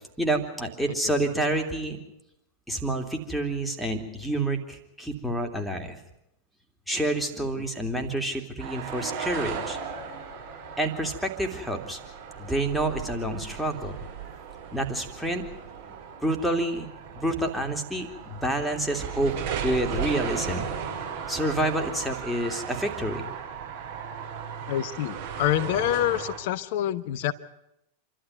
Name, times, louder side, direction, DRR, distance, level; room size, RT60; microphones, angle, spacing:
voice 1, 0.2-2.0 2.7-6.0 6.9-9.8 10.8-12.0 12.4-14.0 14.7-15.4 16.2-16.9 17.1-19.3 19.6-20.7 21.3-23.3, right 1 dB, ahead, 3 dB, 3.0 m, -28 dB
sound 1, 8.6-26.4, right 7 dB, 50° right, 6.5 m, -36 dB
voice 2, 24.7-27.3, left 12 dB, 50° left, 15 dB, 1.0 m, -27 dB
27.5 x 12.5 x 9.3 m, 0.85 s
figure-of-eight pair, 90°, 0 cm